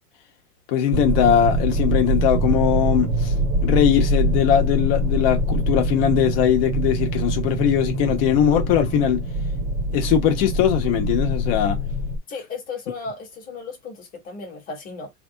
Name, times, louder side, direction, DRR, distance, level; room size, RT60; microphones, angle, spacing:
voice 1, 0.7-3.3 3.6-9.3 9.9-11.8, left 9 dB, 40° left, 1.1 m, -20 dB
sound 1, 0.9-12.2, right 1 dB, 25° right, 0.5 m, -23 dB
voice 2, 12.3-15.1, left 4 dB, 20° left, 1.3 m, -35 dB
3.4 x 2.5 x 3.8 m
supercardioid pair, 155°, 46 cm